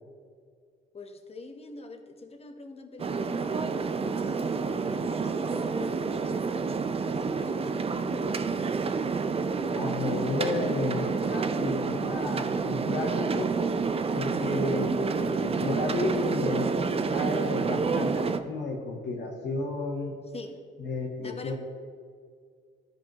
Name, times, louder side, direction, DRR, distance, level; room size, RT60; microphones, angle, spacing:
voice 1, 0.9-8.0 20.3-20.6 21.2-21.6, left 3 dB, 30° left, 6 dB, 0.9 m, -45 dB
sound 1, 3.0-18.4, right 5 dB, 30° right, 0.5 m, -29 dB
voice 2, 9.7-13.5 14.1-20.1 20.8-21.6, left 2 dB, 60° left, -2 dB, 1.3 m, -32 dB
14.0 x 5.3 x 3.0 m, 2.1 s
cardioid pair, 90°, 20 cm